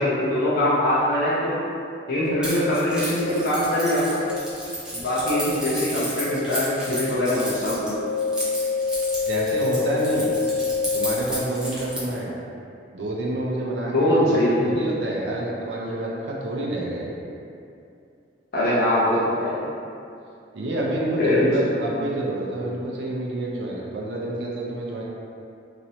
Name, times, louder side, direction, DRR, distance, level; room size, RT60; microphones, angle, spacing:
voice 1, 0.0-1.5 2.1-4.1 5.0-8.0 13.9-14.8 18.5-19.6 21.2-21.5, left 1 dB, 55° left, -9 dB, 0.5 m, -22 dB
sound 1, 2.2-2.3 3.2-3.3 4.2-4.3 5.2-5.3 6.2-6.3 6.8-6.9 7.4-7.5 7.9-11.0, left 4 dB, 35° left, 0.8 m, -26 dB
Keys jangling, 2.4-12.2, equal, 5° right, 0.5 m, -33 dB
voice 2, 9.3-10.4 10.9-12.4 12.9-17.2 20.5-25.0, right 1 dB, 70° right, -3 dB, 0.5 m, -28 dB
3.0 x 2.8 x 2.7 m, 2.6 s
head